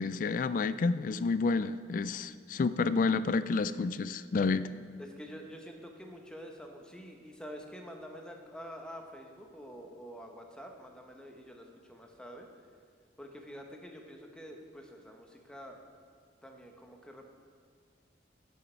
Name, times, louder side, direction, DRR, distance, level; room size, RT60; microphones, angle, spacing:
voice 1, 0.0-4.7, left 4 dB, 45° left, 14 dB, 0.3 m, -29 dB
voice 2, 5.0-12.5 13.2-15.8 16.4-17.2, equal, 5° left, 2 dB, 0.9 m, -47 dB
15.5 x 6.4 x 4.5 m, 2.1 s
head